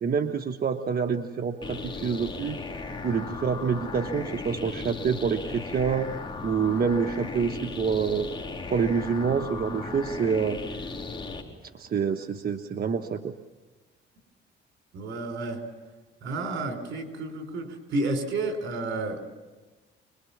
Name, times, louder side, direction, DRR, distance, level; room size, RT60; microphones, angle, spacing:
voice 1, 0.0-2.6 3.0-6.1 6.4-8.3 8.7-10.9 11.7-13.3, right 6 dB, 50° right, 6 dB, 1.3 m, -27 dB
sound 1, 1.6-11.4, left 3 dB, 25° left, 3.9 m, -36 dB
voice 2, 14.9-15.6 16.2-19.2, right 2 dB, 75° right, 6 dB, 4.8 m, -31 dB
25.5 x 22.0 x 7.3 m, 1.2 s
cardioid pair, 90°, 20 cm